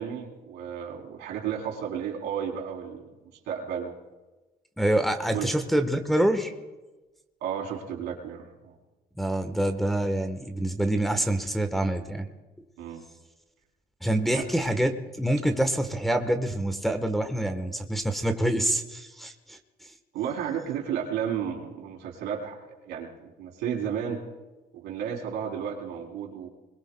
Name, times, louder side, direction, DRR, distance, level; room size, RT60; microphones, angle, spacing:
voice 1, 0.0-3.1 3.5-3.9 5.3-5.6 7.4-8.7 12.8-13.0 14.3-14.5 20.1-22.6 22.9-24.2 24.7-26.5, right 8 dB, 90° right, 0 dB, 3.4 m, -33 dB
voice 2, 4.8-6.5 9.2-12.3 14.0-19.6, right 1 dB, ahead, 5 dB, 1.1 m, -26 dB
28.0 x 21.5 x 2.2 m, 1.2 s
cardioid pair, 110°, 17 cm